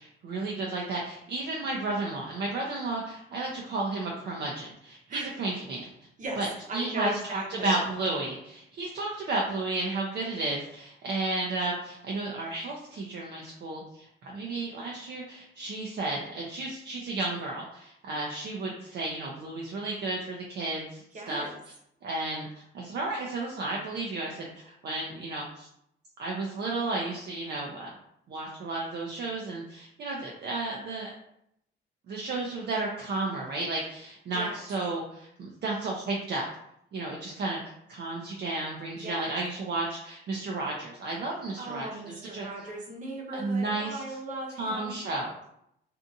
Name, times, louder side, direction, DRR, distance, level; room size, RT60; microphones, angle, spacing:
voice 1, 0.0-5.9 6.4-6.5 6.7-21.5 22.0-25.7 26.2-27.9 28.3-31.1 32.1-36.4 36.9-42.7 43.3-44.2 44.6-45.3, right 2 dB, 55° right, -2 dB, 0.5 m, -33 dB
voice 2, 6.7-7.8 21.1-21.5 34.3-34.6 38.9-39.2 41.6-45.0, right 2 dB, 40° right, -1 dB, 0.9 m, -37 dB
2.6 x 2.4 x 2.6 m, 0.76 s
cardioid pair, 90°, 20 cm